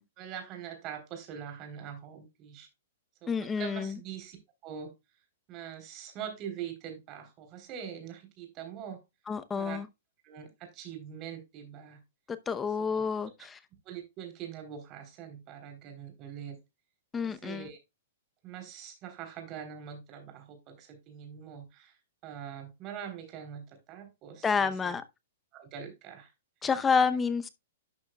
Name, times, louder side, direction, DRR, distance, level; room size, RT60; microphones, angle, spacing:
voice 1, 0.2-2.7 3.2-4.4 4.6-4.9 5.5-9.0 9.6-9.8 10.2-12.0 12.9-13.0 13.9-16.6 17.2-17.8 18.4-22.0 22.2-25.0 25.5-26.3, right 8 dB, 35° right, 3.6 m, -43 dB
voice 2, 3.3-4.0 9.3-9.9 12.3-13.6 17.1-17.7 24.4-25.0 26.6-27.5, left 5 dB, 15° left, 0.7 m, -29 dB
11.5 x 6.3 x 2.3 m
hypercardioid pair, 145°, 0 cm